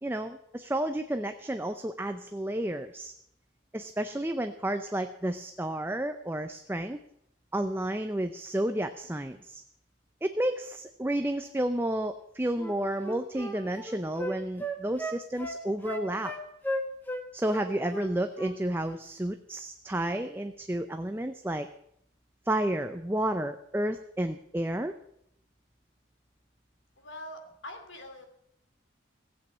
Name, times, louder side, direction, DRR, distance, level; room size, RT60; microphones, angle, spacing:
voice 1, 0.0-3.1 3.7-7.0 7.5-9.6 10.2-16.3 17.3-21.7 22.5-24.9, right 1 dB, 10° right, 8 dB, 0.5 m, -31 dB
Wind instrument woodwind instrument, 12.6-17.2 17.5-18.6 18.8-19.0, equal, 10° left, 1.3 m, -35 dB
voice 2, 27.0-28.2, left 1 dB, 80° left, 6 dB, 2.8 m, -43 dB
16.0 x 8.4 x 8.4 m, 0.74 s
head